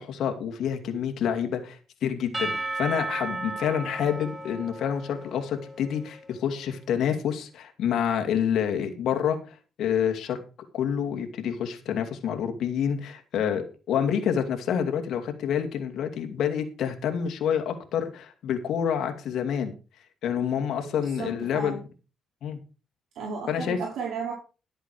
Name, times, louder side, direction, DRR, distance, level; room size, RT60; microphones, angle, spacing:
voice 1, 0.0-10.4 10.7-19.7 20.2-21.8 22.4-22.6 23.5-23.8, left 8 dB, 75° left, 5 dB, 2.5 m, -28 dB
Percussion / Church bell, 2.3-6.2, right 2 dB, 25° right, 3.2 m, -34 dB
voice 2, 20.8-21.8 23.1-24.3, right 5 dB, 75° right, -3 dB, 5.0 m, -34 dB
13.0 x 8.1 x 4.7 m, 0.34 s
cardioid pair, 90°, 0 cm